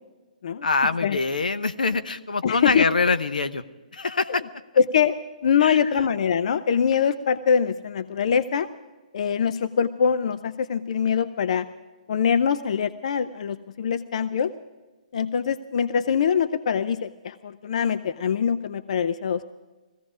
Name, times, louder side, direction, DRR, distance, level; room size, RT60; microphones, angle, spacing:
voice 1, 0.6-3.6 3.9-4.4 5.6-5.8, left 4 dB, 80° left, 11 dB, 0.9 m, -24 dB
voice 2, 2.4-2.9 4.8-5.1 5.4-8.7 9.1-11.7 12.1-14.5 15.1-19.4, left 7 dB, 55° left, 13 dB, 0.6 m, -23 dB
17.5 x 15.5 x 5.0 m, 1.2 s
figure-of-eight pair, 135°, 4 cm